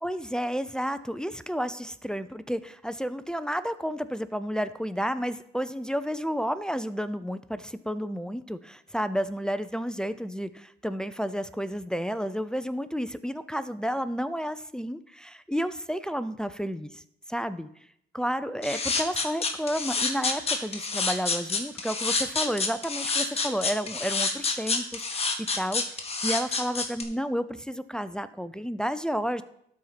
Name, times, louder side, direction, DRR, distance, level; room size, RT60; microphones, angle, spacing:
voice 1, 0.0-17.0 17.3-17.7 18.1-29.4, equal, 5° left, 12 dB, 0.5 m, -31 dB
sound 1, 18.6-27.0, left 4 dB, 30° left, 1.5 m, -28 dB
12.0 x 4.4 x 5.7 m, 0.72 s
cardioid pair, 90°, 20 cm